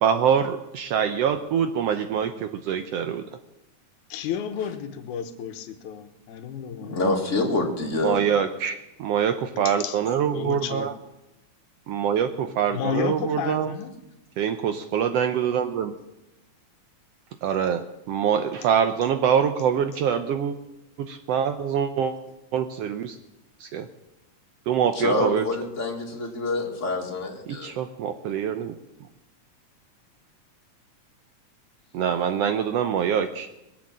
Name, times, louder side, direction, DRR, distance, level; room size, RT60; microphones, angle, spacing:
voice 1, 0.0-3.2 7.0-7.2 8.0-10.9 11.9-13.7 14.4-15.9 17.4-20.5 21.0-22.1 22.5-23.2 23.6-23.9 24.7-25.4 27.5-28.7 31.9-33.5, right 8 dB, 75° right, 9 dB, 1.5 m, -24 dB
voice 2, 4.1-7.0 9.6-10.0 10.3-10.9 12.7-13.9, left 8 dB, 85° left, 10 dB, 2.4 m, -32 dB
voice 3, 6.8-8.2 24.9-27.7, left 2 dB, 30° left, 2 dB, 2.0 m, -26 dB
21.5 x 8.0 x 7.4 m, 0.92 s
omnidirectional pair, 3.4 m